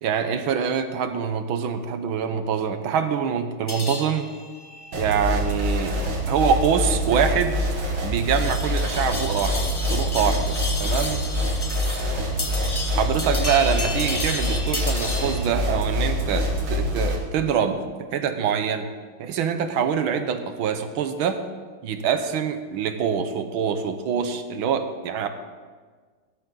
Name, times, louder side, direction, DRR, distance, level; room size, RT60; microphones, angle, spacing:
voice 1, 0.0-4.3 4.9-6.0 6.3-7.6 8.0-11.2 12.9-18.9 19.2-21.4 21.8-25.3, right 7 dB, 90° right, 8 dB, 1.8 m, -25 dB
sound 1, 3.7-15.5, left 2 dB, 25° left, 0.5 m, -33 dB
sound 2, 4.9-17.2, equal, 60° right, 2.4 m, -25 dB
18.0 x 12.0 x 3.9 m, 1.5 s
omnidirectional pair, 2.2 m